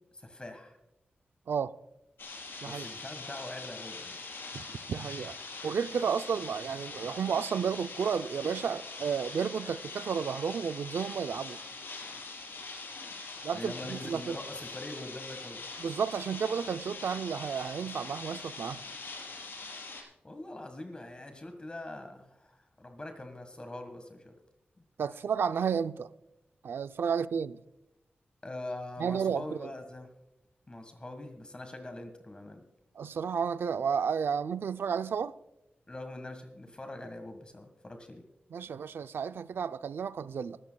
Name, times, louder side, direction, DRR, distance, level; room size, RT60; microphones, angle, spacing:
voice 1, 0.1-0.8 2.6-4.2 13.5-15.6 20.2-24.3 28.4-30.1 30.7-32.6 35.9-38.2, left 1 dB, 25° left, 1.5 m, -43 dB
sound 1, 2.2-20.0, left 3 dB, 75° left, 4.0 m, -43 dB
voice 2, 4.5-5.4 5.6-11.6 13.4-14.4 15.8-18.8 25.0-26.1 26.6-27.6 29.0-29.7 33.0-35.3 38.5-40.6, right 6 dB, 85° right, 0.4 m, -32 dB
22.5 x 13.5 x 2.3 m
wide cardioid pair, 110°, 4 cm